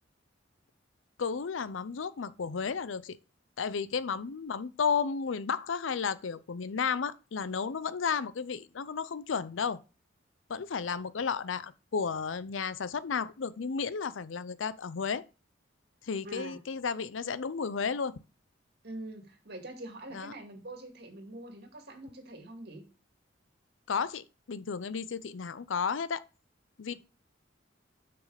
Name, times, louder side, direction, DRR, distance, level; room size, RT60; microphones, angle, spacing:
voice 1, 1.2-3.2 3.6-9.8 10.5-15.2 16.0-18.2 20.1-20.3 23.9-26.2 26.8-26.9, left 6 dB, 85° left, 0.5 m, -33 dB
voice 2, 16.2-16.6 18.8-22.8, right 1 dB, 55° right, 2.3 m, -44 dB
6.3 x 6.0 x 4.9 m
head